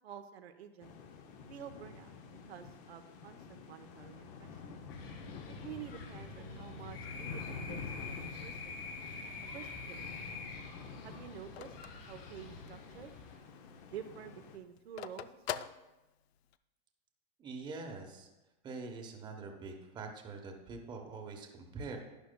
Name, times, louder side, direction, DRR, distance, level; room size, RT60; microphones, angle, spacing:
voice 1, 0.0-0.9 1.5-2.2 2.5-4.6 5.5-8.9 9.5-10.3 11.0-11.7 12.1-13.1 13.8-15.7, right 9 dB, 90° right, 7 dB, 0.9 m, -49 dB
sound 1, 0.8-14.6, left 5 dB, 25° left, 0.6 m, -49 dB
sound 2, 4.9-13.4, left 4 dB, 70° left, 2.9 m, -46 dB
Telephone, 9.5-12.9 13.3-13.4 13.7-16.6, left 11 dB, 85° left, 0.5 m, -45 dB
voice 2, 17.4-18.3 18.6-22.0, right 4 dB, 15° right, 2 dB, 0.9 m, -44 dB
12.0 x 10.0 x 2.2 m, 1.0 s
supercardioid pair, 155°, 31 cm